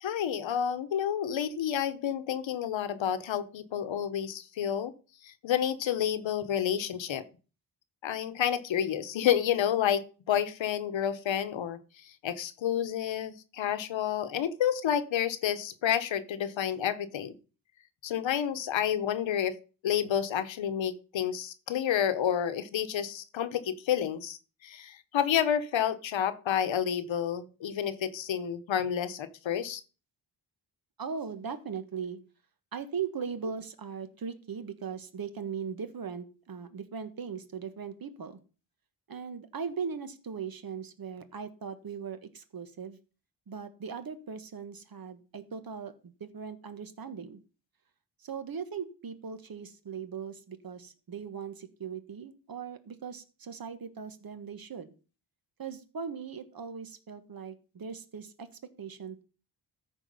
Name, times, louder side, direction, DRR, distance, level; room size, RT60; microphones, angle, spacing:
voice 1, 0.0-4.9 5.2-7.2 8.0-17.3 18.0-19.6 19.8-29.8, left 9 dB, 90° left, 12 dB, 1.1 m, -30 dB
voice 2, 31.0-32.2 32.7-38.4 39.1-43.0 43.5-47.4 48.2-54.9 55.6-59.2, right 6 dB, 50° right, 11 dB, 1.3 m, -39 dB
13.5 x 4.7 x 5.5 m, 0.36 s
wide cardioid pair, 115°, 44 cm